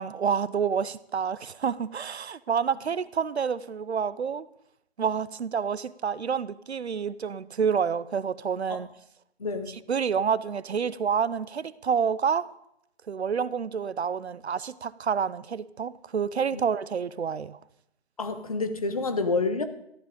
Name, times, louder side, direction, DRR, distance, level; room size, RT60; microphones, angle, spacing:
voice 1, 0.0-4.5 5.0-8.9 9.9-12.5 13.1-17.6, right 6 dB, 80° right, 0.8 m, -28 dB
voice 2, 9.4-9.8 16.5-16.6 18.2-19.6, left 3 dB, 35° left, 1.0 m, -28 dB
14.0 x 11.5 x 5.1 m
hypercardioid pair, 175°, 32 cm